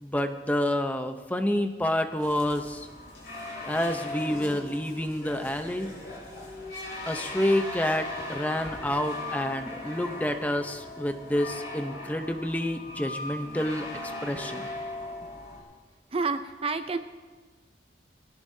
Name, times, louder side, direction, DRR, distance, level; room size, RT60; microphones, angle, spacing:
voice 1, 0.0-2.9 3.7-5.9 7.1-14.7, left 1 dB, 10° left, 7 dB, 0.7 m, -28 dB
sound 1, 2.2-15.6, left 2 dB, 60° left, 5.3 m, -38 dB
voice 2, 16.1-17.0, right 4 dB, 30° right, 9 dB, 0.5 m, -29 dB
19.5 x 18.0 x 2.8 m, 1.3 s
head